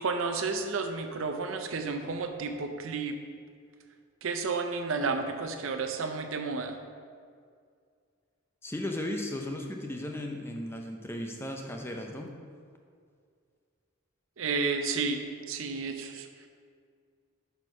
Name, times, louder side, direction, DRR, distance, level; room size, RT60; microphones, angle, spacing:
voice 1, 0.0-3.2 4.2-6.8 14.4-16.5, right 4 dB, 70° right, 5 dB, 0.5 m, -32 dB
voice 2, 8.6-12.4, left 1 dB, 10° left, 2 dB, 0.5 m, -36 dB
6.2 x 4.6 x 5.4 m, 2.1 s
head